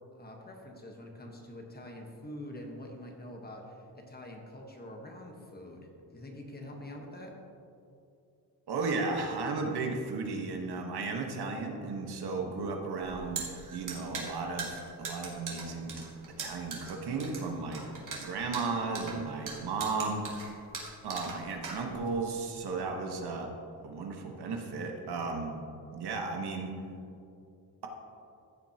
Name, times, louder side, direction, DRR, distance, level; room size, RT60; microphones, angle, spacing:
voice 1, 0.1-7.3, left 1 dB, 25° left, 1 dB, 1.3 m, -45 dB
voice 2, 8.7-16.0 16.4-17.8 18.2-20.3 21.0-23.5 23.8-25.6 25.9-26.7, right 4 dB, 70° right, 2 dB, 1.4 m, -34 dB
sound 1, 13.0-22.2, right 4 dB, 50° right, 2.1 m, -40 dB
14.5 x 7.4 x 2.9 m, 2.6 s
cardioid pair, 115°, 40 cm